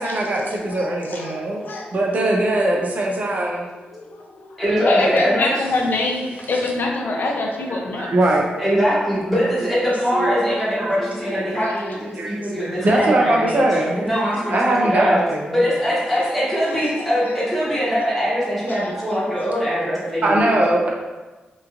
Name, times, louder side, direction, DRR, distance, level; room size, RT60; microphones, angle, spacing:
voice 1, 0.0-1.6 1.9-3.6 7.9-8.4 9.6-9.7 10.1-10.4 10.8-11.7 12.2-12.4 12.8-14.0 14.5-15.5 20.2-21.0, right 1 dB, 50° right, -1 dB, 0.5 m, -21 dB
voice 2, 0.5-1.9 3.8-8.1 11.2-12.3 14.4-14.7 16.8-17.3 17.6-17.8 18.7-19.3, left 2 dB, 65° left, 0 dB, 0.5 m, -27 dB
voice 3, 4.6-5.5 8.6-13.7 13.9-15.2 15.5-20.5, equal, ahead, -9 dB, 0.9 m, -22 dB
3.0 x 2.3 x 2.4 m, 1.2 s
cardioid pair, 75°, 4 cm